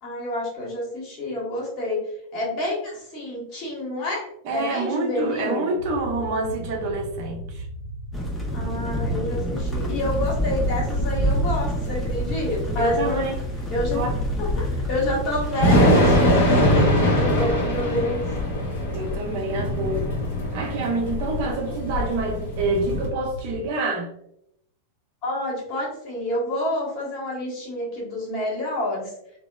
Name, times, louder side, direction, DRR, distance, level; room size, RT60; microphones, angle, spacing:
voice 1, 0.0-5.7 8.5-13.3 13.7-14.0 14.4-18.2 21.7-21.8 25.2-29.1, left 1 dB, 40° left, -4 dB, 1.1 m, -28 dB
voice 2, 4.4-7.7 12.8-13.3 13.9-14.2 18.9-20.1 20.5-24.1, right 2 dB, 45° right, 1 dB, 0.5 m, -27 dB
sound 1, 5.8-23.7, equal, 90° left, 0.7 m, -36 dB
sound 2, 8.1-16.5, equal, 10° left, 0.5 m, -28 dB
Thunder / Rain, 9.6-23.1, left 1 dB, 55° left, 0.7 m, -23 dB
2.8 x 2.0 x 2.2 m, 0.76 s
figure-of-eight pair, 90°, 0 cm